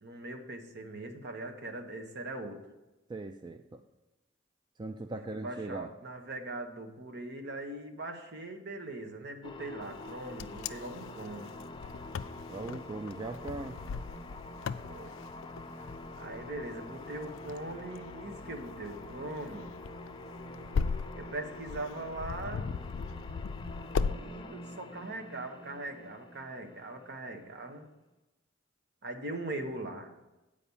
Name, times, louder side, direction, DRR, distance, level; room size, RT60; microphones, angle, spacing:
voice 1, 0.0-2.6 5.3-11.5 14.8-15.2 16.2-19.7 21.2-22.7 24.1-27.9 29.0-30.1, right 2 dB, 60° right, 5 dB, 1.0 m, -41 dB
voice 2, 3.1-3.8 4.8-5.9 12.5-13.8, right 2 dB, 25° right, 7 dB, 0.3 m, -39 dB
sound 1, 9.4-27.7, left 2 dB, 25° left, 0.6 m, -46 dB
Wind, 10.0-24.2, left 5 dB, 75° left, 0.3 m, -38 dB
8.1 x 5.0 x 7.0 m, 1.0 s
head